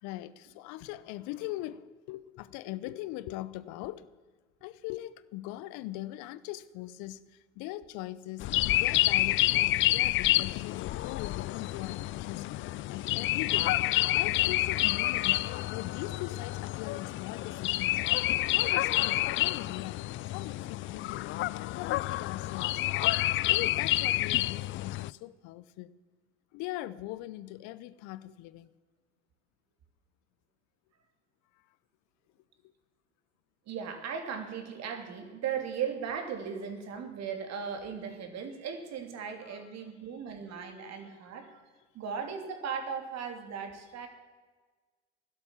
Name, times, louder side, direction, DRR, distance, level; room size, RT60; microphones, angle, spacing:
voice 1, 0.0-4.1 4.6-8.5 8.7-12.5 12.9-13.8 14.1-15.4 15.7-18.0 18.5-20.0 20.3-21.3 21.6-22.8 23.4-25.9 26.5-28.7 37.3-37.4 39.4-39.8 40.6-41.1, left 15 dB, 60° left, 0.8 m, -41 dB
sound 1, 8.4-25.1, left 16 dB, 40° left, 0.4 m, -29 dB
voice 2, 33.7-41.6 41.9-44.1, right 7 dB, 50° right, 2.9 m, -37 dB
15.5 x 12.5 x 7.3 m
hypercardioid pair, 70°, 34 cm